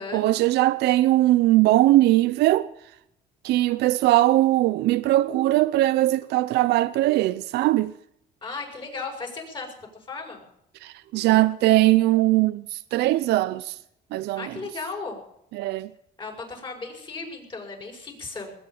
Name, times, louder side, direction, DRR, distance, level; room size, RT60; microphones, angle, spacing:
voice 1, 0.1-2.7 3.4-7.9 10.8-13.8 14.1-14.6 15.5-15.9, right 16 dB, 80° right, 0.6 m, -20 dB
voice 2, 8.4-9.8 10.1-10.5 14.4-15.2 16.2-18.5, left 4 dB, 30° left, 5.6 m, -35 dB
20.5 x 8.8 x 7.2 m
cardioid pair, 110°, 17 cm